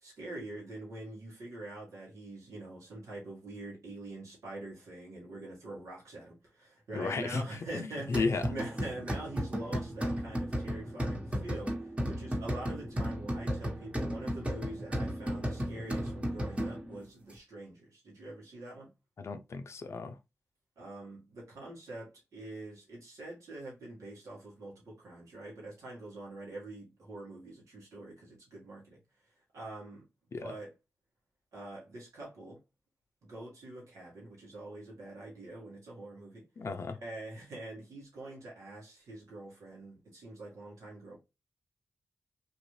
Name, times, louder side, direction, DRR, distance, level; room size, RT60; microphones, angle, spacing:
voice 1, 0.0-18.9 20.8-29.0 29.5-30.0 30.4-30.7 31.5-32.6 33.2-36.4 37.0-41.2, right 2 dB, 85° right, 1.6 m, -45 dB
voice 2, 6.9-7.4 7.7-8.4 19.2-20.2 30.3-30.5 36.6-37.0, left 4 dB, 60° left, 0.5 m, -33 dB
sound 1, 8.1-17.0, equal, 25° right, 1.1 m, -34 dB
3.0 x 2.6 x 3.1 m
cardioid pair, 45°, 5 cm